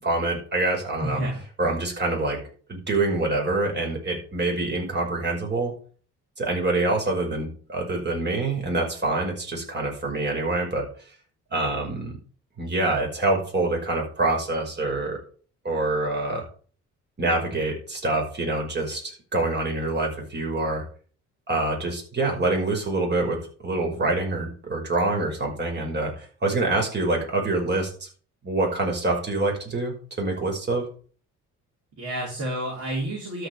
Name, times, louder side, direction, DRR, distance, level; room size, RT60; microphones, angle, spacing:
voice 1, 0.0-1.2 1.6-2.4 2.7-5.7 6.4-10.9 11.5-12.2 12.6-15.2 15.6-16.5 17.2-20.8 21.5-28.1 28.4-30.8, right 2 dB, 35° right, 1 dB, 5.4 m, -26 dB
voice 2, 1.0-1.7 32.0-33.5, right 1 dB, 50° right, -3 dB, 5.2 m, -30 dB
12.5 x 5.5 x 6.9 m, 0.42 s
cardioid pair, 90°, 30 cm